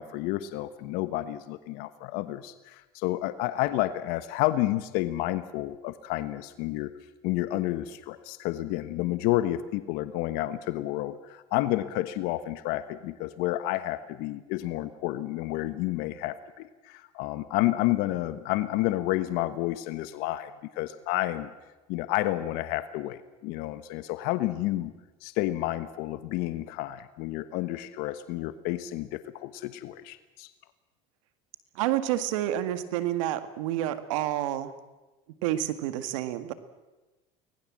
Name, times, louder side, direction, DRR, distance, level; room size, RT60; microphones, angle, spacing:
voice 1, 0.0-6.9 7.2-21.5 21.9-24.9 25.2-30.5, left 16 dB, 70° left, 12 dB, 1.2 m, -30 dB
voice 2, 31.8-34.7 35.4-36.5, right 13 dB, 85° right, 11 dB, 1.9 m, -29 dB
24.5 x 19.5 x 7.6 m, 1.1 s
supercardioid pair, 105°, 16 cm